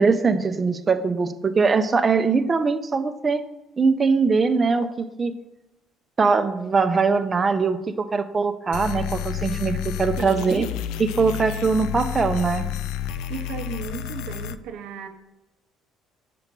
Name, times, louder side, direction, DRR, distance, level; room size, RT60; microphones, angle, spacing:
voice 1, 0.0-3.4 3.8-5.3 6.2-10.7 11.0-12.7, right 4 dB, 25° right, 10 dB, 0.5 m, -21 dB
sound 1, 8.7-14.6, left 11 dB, 85° left, 0.3 m, -30 dB
voice 2, 10.2-10.7 13.3-15.1, right 6 dB, 75° right, 5 dB, 0.7 m, -35 dB
6.8 x 3.0 x 5.2 m, 1.0 s
cardioid pair, 120°, 0 cm